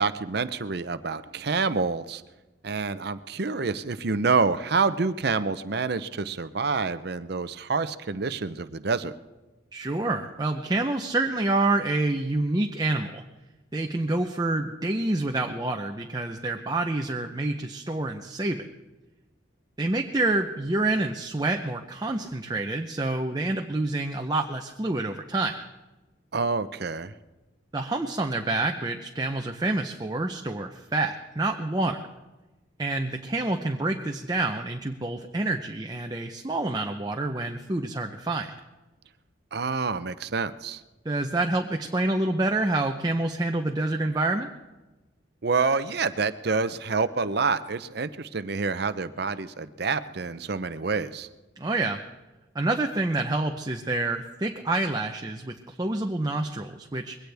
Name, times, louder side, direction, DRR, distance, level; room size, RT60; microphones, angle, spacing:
voice 1, 0.0-2.2 2.6-9.1 26.3-27.1 39.5-40.8 45.4-51.3, right 4 dB, 55° right, 12 dB, 0.7 m, -27 dB
voice 2, 9.7-13.2 13.7-18.7 19.8-25.6 27.7-32.0 32.8-38.5 41.0-44.5 51.6-52.0 52.5-57.2, right 2 dB, 20° right, 3 dB, 0.7 m, -27 dB
22.0 x 17.5 x 3.5 m, 1.1 s
head